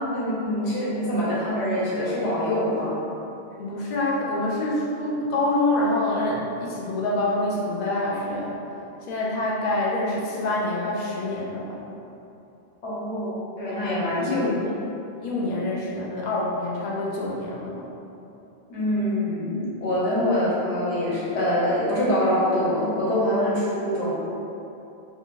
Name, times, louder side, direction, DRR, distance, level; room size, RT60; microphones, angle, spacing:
voice 1, 0.1-3.0 12.8-14.7 18.7-24.1, left 1 dB, 85° left, -7 dB, 1.3 m, -25 dB
voice 2, 3.6-8.6 9.1-11.8 13.7-14.8 15.2-17.9, left 2 dB, 45° left, -4 dB, 0.7 m, -26 dB
4.1 x 2.3 x 4.0 m, 2.9 s
omnidirectional pair, 1.1 m